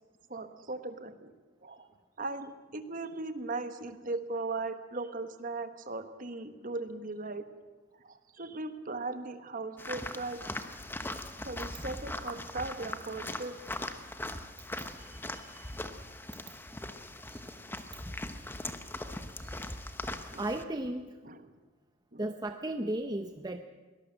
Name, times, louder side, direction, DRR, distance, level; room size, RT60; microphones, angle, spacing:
voice 1, 0.3-1.3 1.6-1.9 2.2-7.4 8.0-10.5 11.4-13.6 15.0-15.7 20.3-20.5 21.2-21.5 22.1-22.2, right 3 dB, 40° right, 9 dB, 1.4 m, -38 dB
sound 1, 9.8-20.6, left 1 dB, 10° left, 1.0 m, -40 dB
voice 2, 20.4-21.2 22.2-23.6, right 1 dB, 20° right, 7 dB, 0.7 m, -34 dB
23.0 x 18.0 x 7.7 m, 1.3 s
head